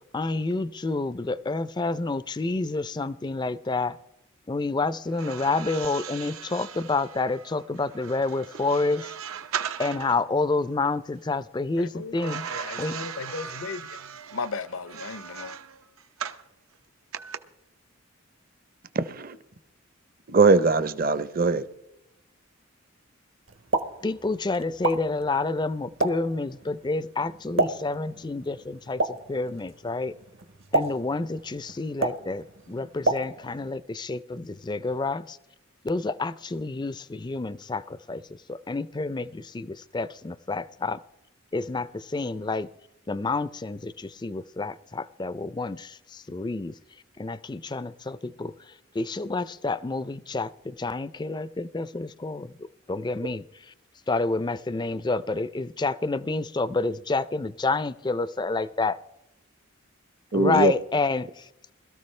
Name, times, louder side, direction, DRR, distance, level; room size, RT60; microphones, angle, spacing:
voice 1, 0.1-4.0 4.5-9.1 9.8-12.5 12.8-12.9 24.0-30.1 30.7-35.4 35.8-38.2 38.5-41.0 41.5-42.7 43.1-46.7 47.2-53.7 54.1-58.9 60.3-61.7, left 3 dB, 20° left, 0.4 m, -29 dB
sound 1, 5.1-10.2 12.2-16.5 17.1-17.4, right 8 dB, 85° right, 0.8 m, -38 dB
voice 2, 11.8-15.6, left 4 dB, 75° left, 0.7 m, -36 dB
voice 3, 18.9-19.4 20.3-21.6 60.3-60.7, right 4 dB, 45° right, 0.7 m, -21 dB
Explosion, 23.5-33.7, right 2 dB, 65° right, 1.1 m, -32 dB
21.5 x 13.5 x 3.2 m
head